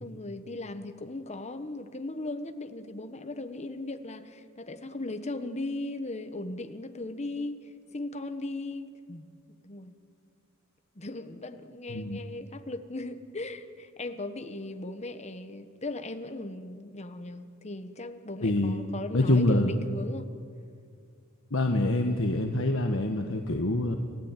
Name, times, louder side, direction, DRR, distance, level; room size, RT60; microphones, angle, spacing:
voice 1, 0.0-9.3 9.6-9.9 10.9-20.3, left 2 dB, 35° left, 8 dB, 1.2 m, -38 dB
voice 2, 18.4-18.8 19.1-19.8 21.5-24.0, left 1 dB, 70° left, 3 dB, 1.4 m, -25 dB
29.5 x 15.0 x 9.2 m, 2.2 s
head